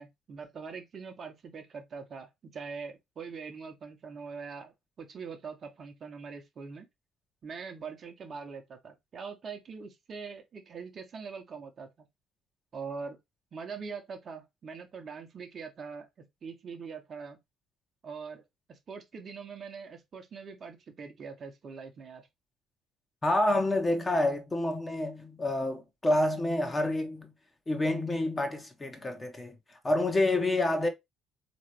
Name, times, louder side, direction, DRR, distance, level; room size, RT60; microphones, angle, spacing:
voice 1, 0.0-6.9 7.4-12.1 12.7-13.2 13.5-16.1 16.4-17.4 18.0-18.4 18.7-22.3, right 5 dB, 45° right, 1.0 m, -43 dB
voice 2, 23.2-27.3 27.7-29.6 29.8-30.9, left 1 dB, 25° left, 1.1 m, -28 dB
4.1 x 3.0 x 3.0 m
figure-of-eight pair, 50°, 0 cm